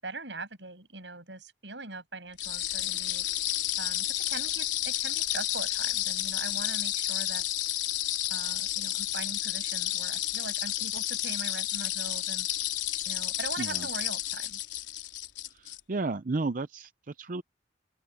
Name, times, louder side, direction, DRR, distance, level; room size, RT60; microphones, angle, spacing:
voice 1, 0.0-3.3 3.8-7.4 8.3-12.5 13.1-14.6, right 3 dB, 80° right, 7.6 m, -41 dB
sound 1, 2.4-15.8, left 13 dB, 85° left, 4.1 m, -31 dB
voice 2, 13.6-13.9 15.5-17.4, right 3 dB, 50° right, 0.6 m, -33 dB
open air
head